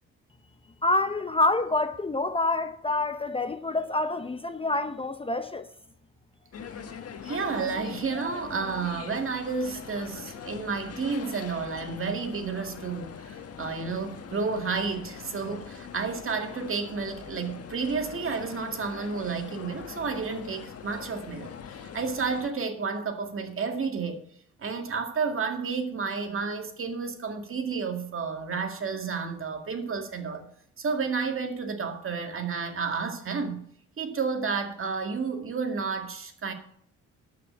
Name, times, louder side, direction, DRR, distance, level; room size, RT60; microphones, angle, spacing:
voice 1, 0.8-5.7, left 2 dB, 20° left, 0.8 m, -27 dB
sound 1, 6.5-22.5, left 7 dB, 50° left, 1.4 m, -42 dB
voice 2, 7.2-24.2 24.6-30.5 30.8-33.6 34.0-36.5, right 5 dB, 45° right, 2.1 m, -31 dB
12.0 x 6.0 x 8.0 m
cardioid pair, 90°, 30 cm